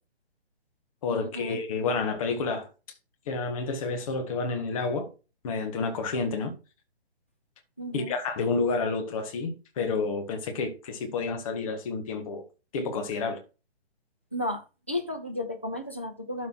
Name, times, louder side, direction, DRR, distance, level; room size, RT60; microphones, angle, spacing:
voice 1, 1.0-2.7 3.3-5.1 5.4-6.5 7.9-12.5 12.7-13.4, left 4 dB, 30° left, 1.6 m, -29 dB
voice 2, 7.8-8.1 14.3-16.5, left 1 dB, 10° left, 0.4 m, -33 dB
12.0 x 4.1 x 4.5 m
figure-of-eight pair, 135°, 33 cm